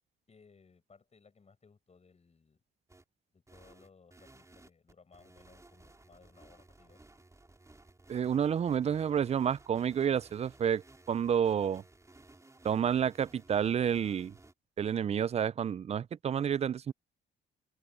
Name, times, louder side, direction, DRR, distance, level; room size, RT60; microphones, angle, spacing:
voice 1, 0.3-2.6 3.3-7.1, left 5 dB, 35° left, 6.1 m, -61 dB
sound 1, 2.9-3.0 3.5-14.5, right 2 dB, 15° right, 4.1 m, -58 dB
voice 2, 8.1-11.8 12.6-14.3 14.8-16.9, right 8 dB, 35° right, 0.4 m, -30 dB
cardioid pair, 90°, 20 cm